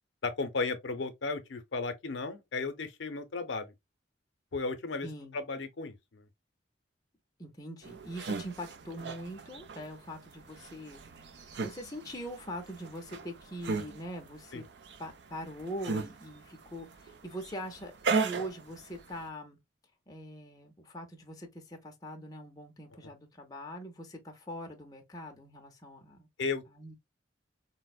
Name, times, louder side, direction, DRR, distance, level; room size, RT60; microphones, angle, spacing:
voice 1, 0.2-3.7 4.5-5.1 5.3-6.2 14.5-14.6 26.4-26.6, left 4 dB, 75° left, 0.6 m, -34 dB
voice 2, 5.0-5.4 7.4-11.0 11.3-14.6 15.0-19.6 20.1-26.3 26.7-26.9, equal, 20° left, 0.5 m, -43 dB
sound 1, 7.8-19.3, right 4 dB, 65° right, 0.5 m, -37 dB
4.1 x 2.0 x 2.3 m
head